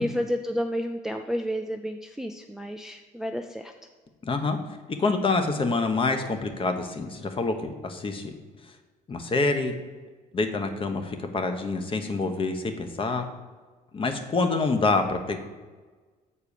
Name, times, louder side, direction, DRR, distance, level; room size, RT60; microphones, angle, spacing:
voice 1, 0.0-3.7, equal, 5° right, 5 dB, 0.4 m, -31 dB
voice 2, 4.2-4.6 5.0-8.3 9.1-9.7 10.3-13.3 13.9-15.4, left 3 dB, 30° left, 7 dB, 1.0 m, -26 dB
7.1 x 4.5 x 6.8 m, 1.4 s
cardioid pair, 110°, 17 cm